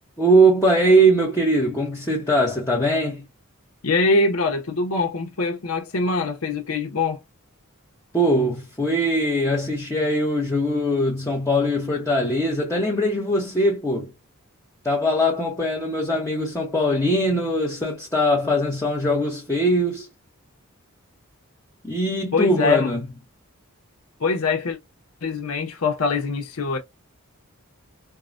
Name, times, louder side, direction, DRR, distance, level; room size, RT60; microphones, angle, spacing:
voice 1, 0.2-3.2 8.1-14.1 14.8-20.1 21.8-23.0, right 1 dB, 15° left, 0.8 m, -21 dB
voice 2, 3.8-7.2 22.3-22.9 24.2-24.8 25.2-26.8, left 3 dB, 80° left, 0.8 m, -23 dB
4.6 x 2.1 x 2.5 m
head